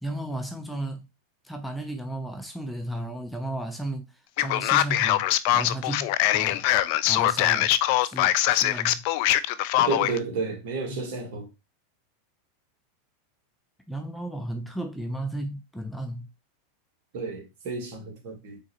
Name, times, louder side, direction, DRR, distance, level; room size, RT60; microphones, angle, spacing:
voice 1, 0.0-1.1 1.4-5.3 5.5-6.7 7.1-7.7 8.0-9.0 13.9-16.3, right 1 dB, ahead, 0.7 m, -34 dB
Male speech man speaking, 4.4-10.2, left 14 dB, 60° left, 0.3 m, -22 dB
voice 2, 9.8-11.5 17.1-18.6, right 4 dB, 60° right, 1.6 m, -31 dB
3.9 x 3.8 x 3.0 m
hypercardioid pair, 100°, 0 cm